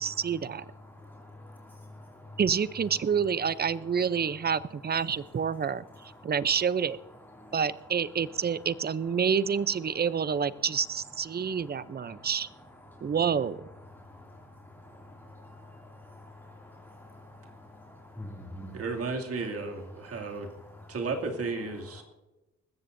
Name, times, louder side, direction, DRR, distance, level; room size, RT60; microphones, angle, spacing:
voice 1, 0.0-0.6 2.4-5.8 6.2-7.0 7.5-12.5 13.0-13.7, right 7 dB, 30° right, 17 dB, 0.6 m, -28 dB
voice 2, 0.7-2.4 4.2-4.3 5.0-6.5 7.3-7.6 8.3-8.7 9.1-9.2 11.3-12.3 12.8-13.2 13.8-18.9 19.4-21.0 21.8-22.0, left 1 dB, 5° left, -2 dB, 2.6 m, -49 dB
voice 3, 18.7-20.5 20.9-22.0, right 3 dB, 50° right, 2 dB, 2.6 m, -33 dB
21.0 x 14.5 x 2.7 m, 1.0 s
cardioid pair, 90°, 30 cm